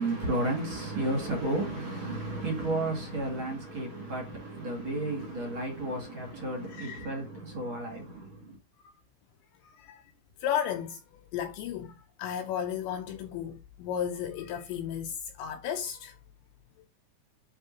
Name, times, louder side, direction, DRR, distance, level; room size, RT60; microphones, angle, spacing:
voice 1, 0.0-8.5, right 2 dB, 45° right, 1.6 m, -32 dB
voice 2, 6.7-7.1 7.6-7.8 9.6-10.0 10.4-16.2, left 9 dB, 80° left, 2.6 m, -34 dB
11.0 x 3.8 x 2.9 m
omnidirectional pair, 6.0 m